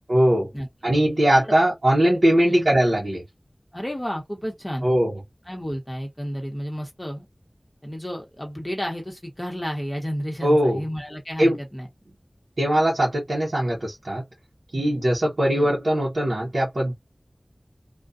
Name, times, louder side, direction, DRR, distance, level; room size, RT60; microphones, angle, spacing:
voice 1, 0.1-0.5 0.8-3.2 4.8-5.1 10.4-10.8 11.4-11.6 12.6-14.2 14.7-16.9, right 1 dB, 80° right, 1.0 m, -20 dB
voice 2, 3.7-4.9 5.5-7.3 7.8-11.9 14.7-15.0 15.5-15.7, equal, 20° left, 1.2 m, -31 dB
2.4 x 2.4 x 2.6 m
wide cardioid pair, 55°, 0 cm